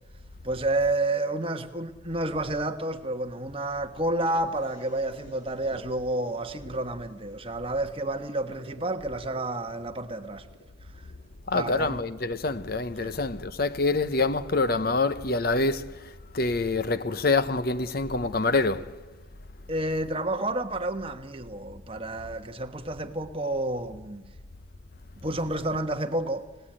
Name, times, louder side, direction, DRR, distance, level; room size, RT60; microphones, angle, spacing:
voice 1, 0.4-10.5 10.9-11.0 11.5-12.0 13.0-13.2 19.7-24.2 25.2-26.5, right 2 dB, 30° right, 1.3 m, -30 dB
sound 1, 4.1-11.9, equal, 90° left, 4.9 m, -51 dB
voice 2, 11.5-19.0, left 3 dB, 50° left, 0.9 m, -26 dB
29.5 x 17.5 x 8.9 m
head